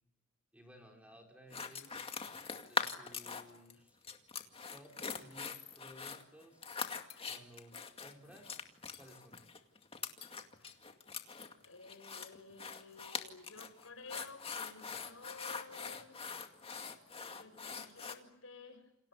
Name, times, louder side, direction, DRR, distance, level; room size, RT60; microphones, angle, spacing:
voice 1, 0.5-2.1 2.7-4.0 4.7-8.7 9.0-9.4, equal, 5° right, 2 dB, 5.1 m, -58 dB
sound 1, 1.5-3.7 4.0-18.1, left 5 dB, 25° left, 2.2 m, -42 dB
voice 2, 11.6-16.2 17.3-19.1, left 3 dB, 70° left, 9 dB, 6.3 m, -54 dB
29.0 x 27.5 x 7.2 m, 0.78 s
head